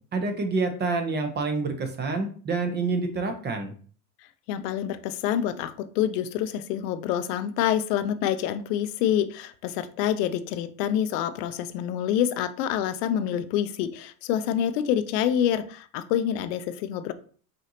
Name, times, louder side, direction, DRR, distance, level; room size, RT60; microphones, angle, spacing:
voice 1, 0.1-3.7, right 3 dB, 20° right, 6 dB, 0.7 m, -27 dB
voice 2, 4.5-17.1, left 10 dB, 75° left, 11 dB, 0.6 m, -27 dB
5.1 x 2.7 x 2.8 m, 0.44 s
supercardioid pair, 110°, 48 cm